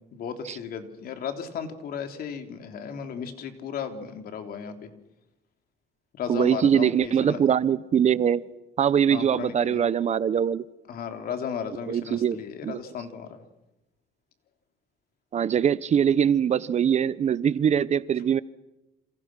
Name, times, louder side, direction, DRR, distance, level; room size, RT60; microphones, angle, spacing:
voice 1, 0.1-4.9 6.1-7.4 9.1-9.8 10.9-13.4, left 7 dB, 60° left, 3.3 m, -35 dB
voice 2, 6.3-8.4 8.8-10.6 11.9-12.4 12.6-12.8 15.3-18.4, right 8 dB, 40° right, 0.8 m, -22 dB
28.5 x 27.0 x 6.1 m
cardioid pair, 110°, 17 cm